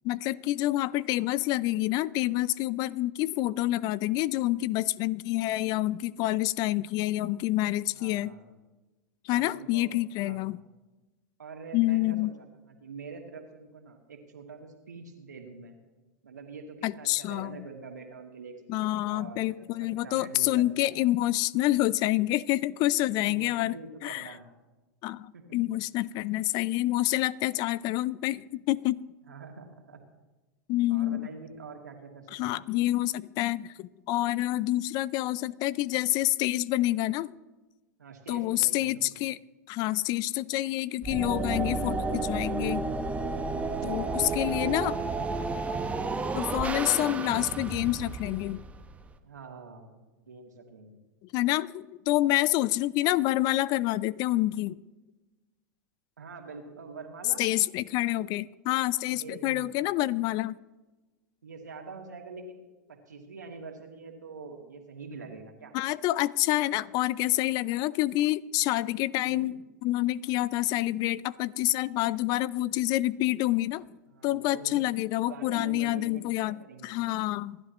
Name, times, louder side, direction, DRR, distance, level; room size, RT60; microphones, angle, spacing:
voice 1, 0.0-8.4 9.2-10.6 11.7-12.3 16.8-17.7 18.7-23.8 24.0-24.3 25.0-29.0 30.7-31.3 32.3-37.3 38.3-39.4 39.7-42.9 43.8-44.9 46.3-48.6 51.3-54.8 57.4-60.5 65.7-69.5 69.8-73.9 74.2-76.6 76.8-77.6, left 16 dB, 45° left, 22 dB, 0.5 m, -27 dB
voice 2, 7.9-8.5 9.3-10.5 11.4-15.8 16.2-20.9 23.3-24.5 25.3-25.6 29.3-30.0 30.9-32.7 38.0-39.0 41.5-41.9 43.8-45.2 49.2-51.0 56.2-57.4 59.1-59.7 61.4-65.7 69.2-69.5 74.1-77.0, right 4 dB, 85° right, 2 dB, 2.7 m, -45 dB
sound 1, 41.0-49.1, right 3 dB, 15° right, 1.2 m, -32 dB
27.0 x 12.5 x 3.1 m, 1.1 s
hypercardioid pair, 95°, 9 cm